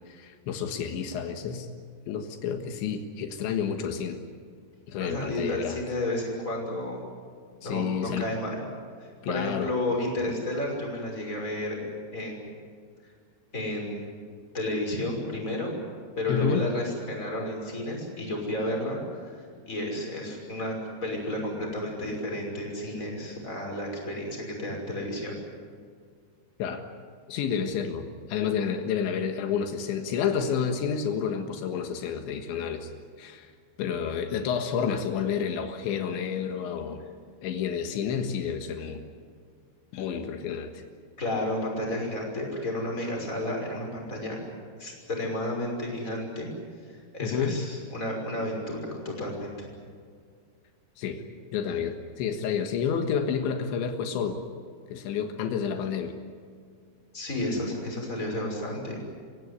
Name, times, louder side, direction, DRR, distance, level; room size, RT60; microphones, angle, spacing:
voice 1, 0.1-1.7 2.1-4.2 4.9-5.8 7.6-8.3 9.2-9.7 16.3-16.6 26.6-26.8 27.3-32.9 33.2-33.5 33.8-37.0 37.4-39.0 39.9-40.8 47.2-47.6 51.0-51.2 51.5-54.4 54.9-56.1, left 7 dB, 85° left, 6 dB, 3.8 m, -30 dB
voice 2, 4.9-7.0 7.6-8.6 9.0-11.8 12.1-12.5 13.5-14.0 14.5-15.8 16.2-19.4 19.7-20.8 21.0-25.3 41.2-44.4 44.8-46.5 46.9-49.5 57.1-59.0, left 1 dB, 15° left, 0 dB, 6.0 m, -32 dB
28.5 x 16.5 x 9.8 m, 2.1 s
omnidirectional pair, 5.1 m